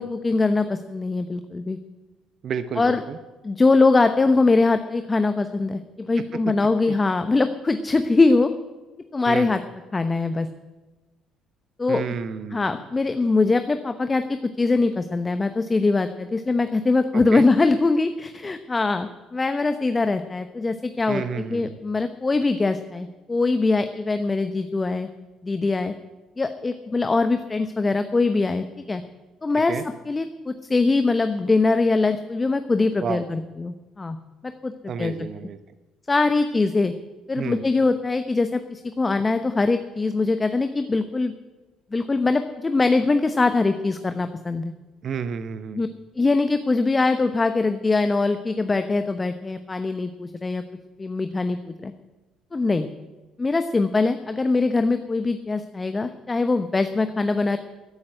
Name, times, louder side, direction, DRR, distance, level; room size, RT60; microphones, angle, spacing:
voice 1, 0.0-1.8 2.8-3.0 3.4-8.5 9.1-9.6 9.9-10.5 11.8-12.0 12.5-25.1 25.4-25.9 26.4-29.0 29.4-29.8 30.1-34.2 34.4-34.7 35.0-35.3 36.1-36.9 37.3-41.3 41.9-44.7 45.7-45.9 46.2-50.6 51.0-51.9 52.5-52.9 53.4-57.6, left 3 dB, 25° left, 9 dB, 0.9 m, -22 dB
voice 2, 2.4-3.2 9.3-9.5 11.9-12.8 17.1-17.4 21.1-21.8 29.7-29.8 33.0-33.2 34.9-35.6 37.3-37.6 45.0-45.8, right 6 dB, 55° right, 12 dB, 0.8 m, -31 dB
14.0 x 8.6 x 9.0 m, 1.2 s
hypercardioid pair, 50°, 0 cm